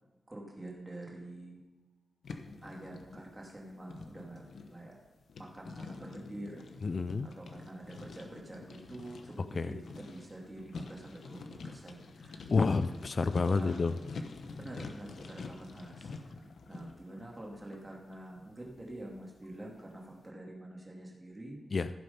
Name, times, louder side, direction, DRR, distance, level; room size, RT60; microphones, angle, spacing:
voice 1, 0.3-1.6 2.6-5.0 5.4-6.7 7.2-12.7 13.5-13.8 14.6-21.6, right 1 dB, 15° right, -2 dB, 2.2 m, -46 dB
sound 1, 2.2-19.9, left 4 dB, 70° left, 1.0 m, -47 dB
voice 2, 6.8-7.3 9.6-9.7 12.5-13.9 21.7-21.9, left 4 dB, 40° left, 12 dB, 0.4 m, -29 dB
15.5 x 6.8 x 5.5 m, 1.2 s
wide cardioid pair, 175°, 0 cm